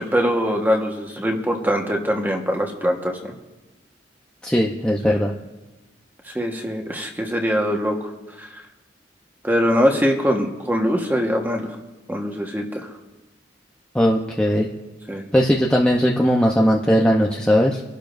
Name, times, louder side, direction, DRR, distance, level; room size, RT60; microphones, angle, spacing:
voice 1, 0.0-3.3 5.0-5.2 6.3-8.1 8.4-8.5 9.4-11.8 12.1-12.9 15.1-15.2, equal, 10° right, 2 dB, 1.3 m, -22 dB
voice 2, 4.4-5.3 13.9-14.7 15.3-17.8, equal, 5° left, -3 dB, 0.8 m, -18 dB
26.0 x 12.0 x 2.6 m, 1.1 s
head